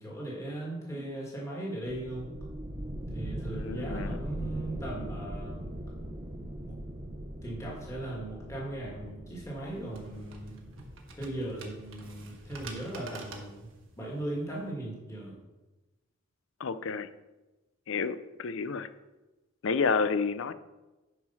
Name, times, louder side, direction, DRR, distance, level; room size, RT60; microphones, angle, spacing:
voice 1, 0.0-2.3 3.1-5.7 6.6-6.8 7.4-10.6 11.1-13.7 14.0-15.4, right 1 dB, 15° left, 1.8 m, -38 dB
sound 1, 1.9-13.3, right 1 dB, 25° right, 0.9 m, -41 dB
voice 2, 3.5-4.2 16.6-17.1 17.9-18.9 19.6-20.5, left 5 dB, 65° left, 0.5 m, -30 dB
sound 2, 9.3-14.7, right 2 dB, 65° right, 1.4 m, -48 dB
9.5 x 4.8 x 5.6 m
head